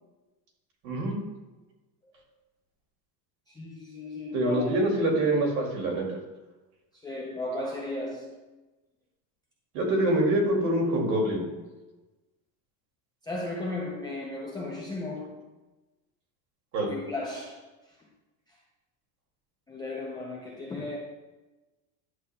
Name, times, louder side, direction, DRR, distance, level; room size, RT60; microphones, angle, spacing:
voice 1, 0.8-1.2 4.3-6.0 9.7-11.5 16.7-16.9, right 1 dB, 60° right, 0 dB, 2.4 m, -25 dB
voice 2, 3.5-4.7 7.0-8.4 13.2-15.4 16.8-17.7 19.7-21.0, left 2 dB, 10° left, -5 dB, 0.4 m, -35 dB
10.5 x 7.2 x 2.2 m, 1.1 s
cardioid pair, 165°, 49 cm